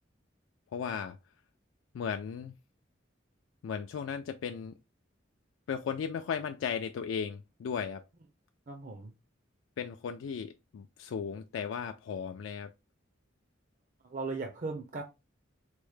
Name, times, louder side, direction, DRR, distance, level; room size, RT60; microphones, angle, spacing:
voice 1, 0.7-1.2 1.9-2.5 3.6-4.7 5.7-8.0 9.8-12.7, left 7 dB, 85° left, 0.3 m, -36 dB
voice 2, 8.7-9.1 14.0-15.0, right 3 dB, 40° right, 0.5 m, -37 dB
4.4 x 2.1 x 3.2 m
head